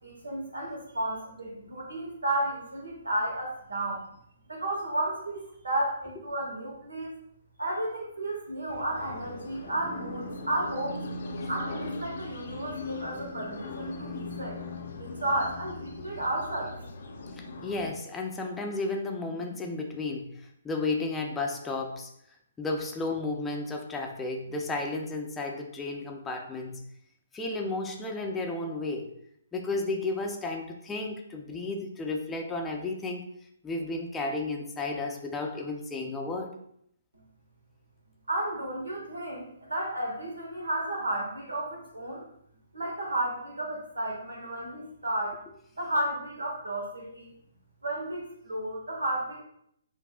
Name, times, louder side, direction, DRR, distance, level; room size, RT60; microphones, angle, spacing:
voice 1, 0.0-4.0 4.5-7.1 7.6-11.0 11.5-14.6 15.0-16.7 38.3-42.2 42.7-45.4 45.8-47.3 47.8-49.4, right 1 dB, 85° right, -1 dB, 1.5 m, -32 dB
sound 1, 8.7-17.9, left 2 dB, 60° left, 0.6 m, -39 dB
voice 2, 17.4-22.1 22.6-26.8 27.3-29.1 29.5-33.2 33.6-36.5, left 3 dB, 10° left, 1 dB, 0.6 m, -33 dB
6.9 x 2.7 x 2.3 m, 0.71 s
figure-of-eight pair, 135°, 0 cm